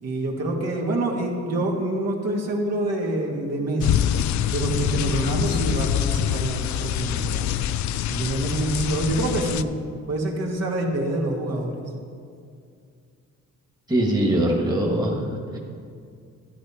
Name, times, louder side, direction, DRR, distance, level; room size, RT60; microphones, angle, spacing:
voice 1, 0.0-4.0 4.5-7.5 8.1-9.6 10.1-11.7, right 2 dB, 55° right, -1 dB, 2.0 m, -26 dB
rain thunder loop, 3.8-9.6, left 10 dB, 70° left, 0.5 m, -25 dB
voice 2, 13.9-15.6, right 1 dB, 15° right, -1 dB, 1.7 m, -22 dB
12.0 x 9.7 x 4.4 m, 2.3 s
cardioid pair, 90°, 30 cm